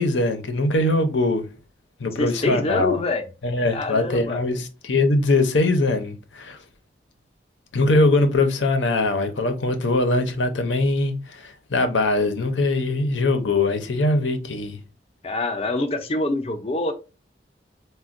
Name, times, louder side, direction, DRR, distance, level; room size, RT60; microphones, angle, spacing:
voice 1, 0.0-1.5 2.0-3.0 3.4-6.6 7.7-14.8, left 2 dB, 90° left, 0.7 m, -22 dB
voice 2, 2.2-3.2 3.7-4.4 15.2-16.9, left 2 dB, 30° left, 0.5 m, -25 dB
4.2 x 2.2 x 2.5 m
head